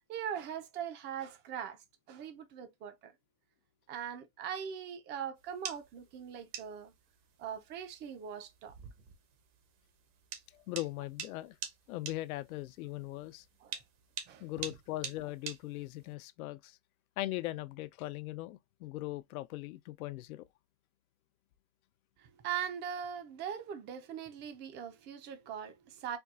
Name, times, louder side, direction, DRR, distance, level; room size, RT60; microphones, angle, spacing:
voice 1, 0.1-1.8 2.1-3.1 3.9-6.9 7.4-8.7 13.6-13.8 14.3-14.5 22.2-26.2, right 8 dB, 25° right, 0.5 m, -41 dB
sound 1, 5.4-16.1, right 8 dB, 60° right, 1.1 m, -46 dB
voice 2, 10.5-11.6 11.9-13.4 14.4-16.8 17.2-20.4, left 17 dB, 80° left, 0.6 m, -40 dB
4.4 x 2.3 x 2.4 m
supercardioid pair, 145°, 43 cm